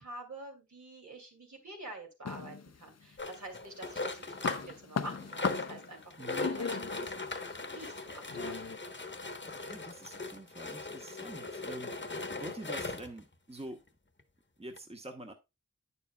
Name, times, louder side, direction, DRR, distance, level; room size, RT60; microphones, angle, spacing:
voice 1, 0.0-6.6 7.0-8.7, right 2 dB, 75° right, 2.7 m, -48 dB
sound 1, 2.2-3.2 3.6-8.8, left 5 dB, 60° left, 0.6 m, -39 dB
sound 2, 3.2-4.8 5.0-13.2 13.9-14.0 14.2-14.3 14.8-14.9, left 3 dB, 40° left, 1.1 m, -39 dB
voice 2, 6.2-6.5 8.2-8.3 9.6-13.8 14.6-15.3, right 1 dB, 20° right, 1.1 m, -46 dB
9.2 x 6.9 x 2.2 m
wide cardioid pair, 40°, 29 cm